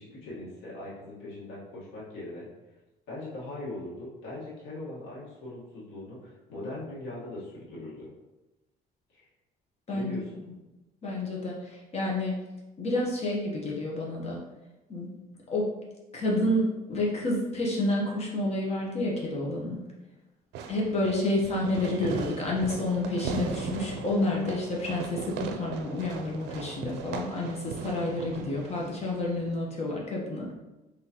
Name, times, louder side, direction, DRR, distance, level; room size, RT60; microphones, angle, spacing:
voice 1, 0.0-2.5 3.1-8.1 9.1-9.2 9.9-10.2, left 1 dB, 85° left, -7 dB, 1.5 m, -40 dB
voice 2, 11.0-12.4 12.8-14.4 14.9-15.1 15.5-15.7 16.1-19.8 20.7-30.5, left 1 dB, 40° left, -3 dB, 1.0 m, -29 dB
Fireworks, 20.5-29.5, right 6 dB, 85° right, 0.4 m, -38 dB
3.8 x 3.7 x 2.9 m, 1.1 s
cardioid pair, 110°, 17 cm